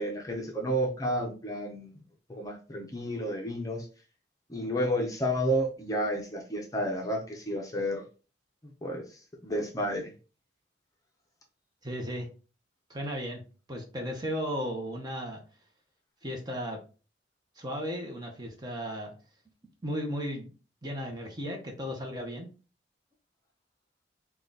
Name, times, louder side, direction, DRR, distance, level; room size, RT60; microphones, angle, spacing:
voice 1, 0.0-1.9 2.3-3.9 4.5-8.0 8.6-10.1, equal, 20° left, 0 dB, 0.7 m, -31 dB
voice 2, 11.8-12.3 12.9-13.4 13.7-15.4 16.2-16.8 17.6-19.1 19.8-20.5 20.8-22.5, equal, 20° right, 1 dB, 0.8 m, -35 dB
3.8 x 2.3 x 3.8 m, 0.35 s
head